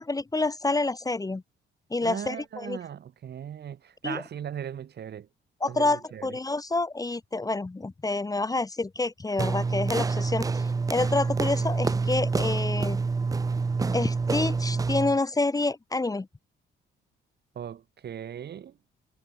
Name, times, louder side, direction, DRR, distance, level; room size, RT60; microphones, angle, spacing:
voice 1, 0.0-1.4 1.9-2.8 4.0-4.2 5.6-10.6 10.9-13.0 13.9-16.3, left 2 dB, 20° left, 1.3 m, -28 dB
voice 2, 2.0-5.3 5.7-6.3 17.6-18.8, right 9 dB, 55° right, 2.1 m, -38 dB
sound 1, 9.4-15.2, right 4 dB, 20° right, 0.4 m, -27 dB
cardioid pair, 90°, 20 cm